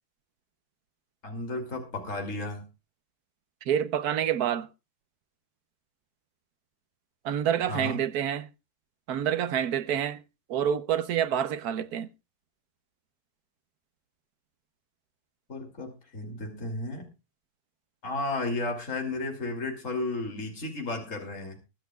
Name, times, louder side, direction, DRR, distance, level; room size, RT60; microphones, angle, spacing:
voice 1, 1.2-2.6 7.7-8.0 15.5-17.1 18.0-21.6, left 2 dB, 55° left, 3.1 m, -33 dB
voice 2, 3.7-4.7 7.2-8.5 9.1-10.2 10.5-12.1, right 9 dB, 75° right, 1.3 m, -27 dB
22.0 x 10.5 x 2.3 m
omnidirectional pair, 1.6 m